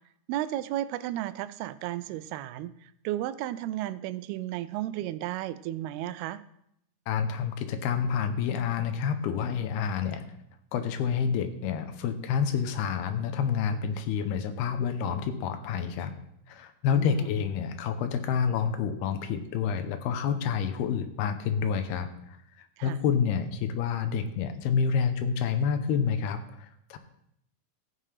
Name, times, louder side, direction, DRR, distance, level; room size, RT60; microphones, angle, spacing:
voice 1, 0.3-6.4 16.9-17.3 22.8-23.0, right 14 dB, 90° right, 15 dB, 2.5 m, -34 dB
voice 2, 7.1-10.3 10.7-16.2 16.5-22.1 22.8-27.0, left 7 dB, 90° left, 9 dB, 2.8 m, -28 dB
15.5 x 5.7 x 5.0 m, 0.76 s
omnidirectional pair, 4.4 m